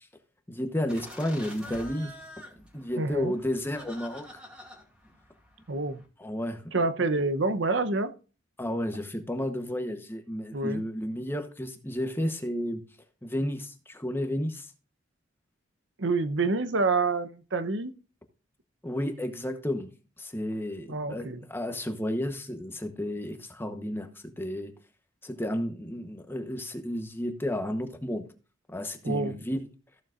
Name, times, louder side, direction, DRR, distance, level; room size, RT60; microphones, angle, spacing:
voice 1, 0.5-2.1 2.6-4.4 6.2-6.6 8.6-12.8 13.2-14.7 18.8-19.9 20.2-24.7 25.2-28.2 28.7-29.7, left 1 dB, 10° left, 7 dB, 1.0 m, -32 dB
sound 1, 0.9-6.0, equal, 5° right, 2.1 m, -47 dB
voice 2, 3.0-3.3 5.7-6.0 6.7-8.1 10.5-10.8 16.0-17.9 20.9-21.4 29.0-29.3, right 3 dB, 75° right, 10 dB, 0.8 m, -27 dB
14.5 x 6.9 x 2.5 m, 0.35 s
head